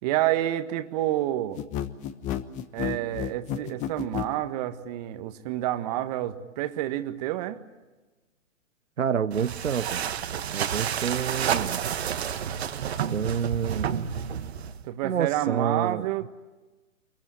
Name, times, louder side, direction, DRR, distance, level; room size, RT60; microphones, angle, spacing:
voice 1, 0.0-1.6 2.7-7.6 14.8-16.3, right 14 dB, 30° right, 1.6 m, -28 dB
sound 1, 1.6-4.3, left 11 dB, 20° left, 1.1 m, -31 dB
voice 2, 9.0-10.1 10.5-11.9 13.1-14.0 15.0-16.1, right 7 dB, 70° right, 1.0 m, -28 dB
sound 2, 9.3-14.9, right 8 dB, 50° right, 1.6 m, -30 dB
27.5 x 22.5 x 8.9 m
figure-of-eight pair, 130°, 39 cm